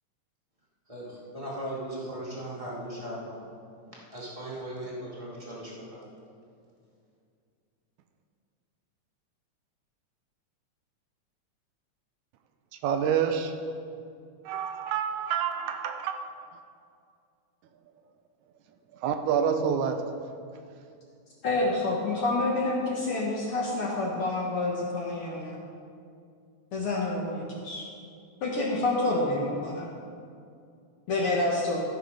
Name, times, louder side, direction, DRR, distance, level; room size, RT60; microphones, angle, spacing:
voice 1, 0.9-3.4 3.9-6.1, right 1 dB, 15° right, -6 dB, 1.7 m, -38 dB
voice 2, 12.7-13.7 14.4-16.5 18.9-20.2, right 7 dB, 80° right, 7 dB, 1.9 m, -28 dB
voice 3, 21.4-25.6 26.7-27.9 28.4-29.9 31.1-31.8, left 2 dB, 60° left, -2 dB, 1.7 m, -28 dB
13.5 x 6.3 x 5.3 m, 2.4 s
omnidirectional pair, 3.5 m